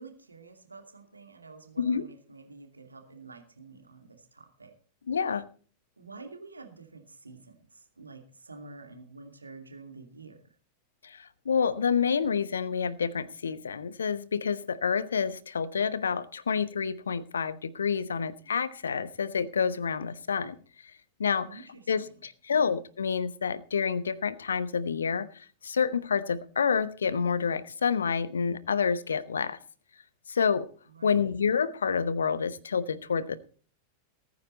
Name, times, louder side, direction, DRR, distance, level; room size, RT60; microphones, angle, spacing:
voice 1, 0.0-4.7 6.0-10.6 21.4-22.2 22.5-22.6 30.9-31.3, right 3 dB, 80° right, 5 dB, 2.6 m, -49 dB
voice 2, 5.1-5.5 11.0-11.2 11.4-20.6 21.2-21.6 21.9-25.3 25.6-29.6 30.3-30.7 31.0-33.4, left 6 dB, 70° left, 16 dB, 1.1 m, -28 dB
19.5 x 9.6 x 4.1 m, 0.41 s
figure-of-eight pair, 90°, 0 cm